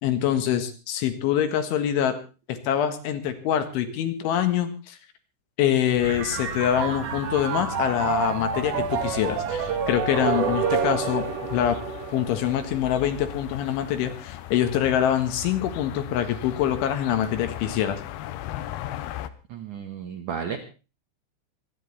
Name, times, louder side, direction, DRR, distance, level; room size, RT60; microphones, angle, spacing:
voice 1, 0.0-2.2 2.5-5.0 5.6-11.2 11.5-11.8 12.1-18.0, left 10 dB, 75° left, 8 dB, 3.9 m, -25 dB
sound 1, 5.9-19.3, left 13 dB, 90° left, 2.2 m, -39 dB
sound 2, 6.0-11.3, right 7 dB, 80° right, 4.4 m, -28 dB
sound 3, 10.1-13.4, right 4 dB, 35° right, 2.7 m, -32 dB
voice 2, 19.5-20.6, right 7 dB, 65° right, 3 dB, 2.0 m, -33 dB
26.0 x 10.0 x 4.2 m, 0.34 s
omnidirectional pair, 5.8 m